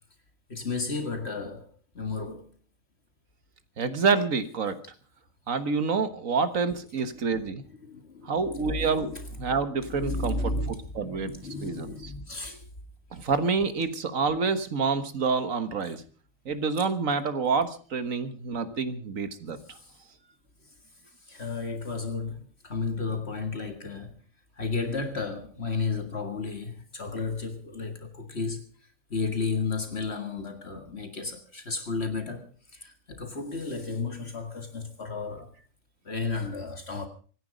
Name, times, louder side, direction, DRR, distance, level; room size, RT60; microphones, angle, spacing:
voice 1, 0.5-2.5 7.1-9.3 9.7-12.6 15.8-15.9 19.5-19.9 21.2-24.2 24.6-28.7 29.1-35.5 36.1-37.1, left 4 dB, 55° left, 2.1 m, -33 dB
voice 2, 3.8-4.8 5.5-7.6 8.3-11.3 11.6-11.9 13.1-16.0 16.5-19.6, right 5 dB, 90° right, 1.9 m, -27 dB
24.5 x 10.5 x 5.1 m
omnidirectional pair, 1.4 m